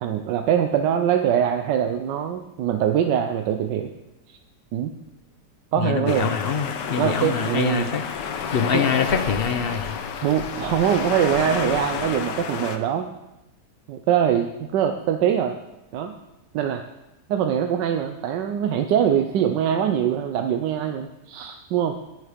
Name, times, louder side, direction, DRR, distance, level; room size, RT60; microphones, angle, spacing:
voice 1, 0.0-3.9 4.7-4.9 5.7-6.3 7.0-7.9 8.7-8.8 10.2-13.1 13.9-15.5 15.9-16.1 16.5-16.8 17.3-22.0, right 9 dB, 90° right, 6 dB, 1.3 m, -23 dB
voice 2, 5.8-8.0 8.5-9.9, left 6 dB, 50° left, 8 dB, 0.7 m, -24 dB
sound 1, 6.1-12.8, left 7 dB, 85° left, 1.5 m, -30 dB
11.0 x 9.7 x 5.1 m, 0.96 s
omnidirectional pair, 1.8 m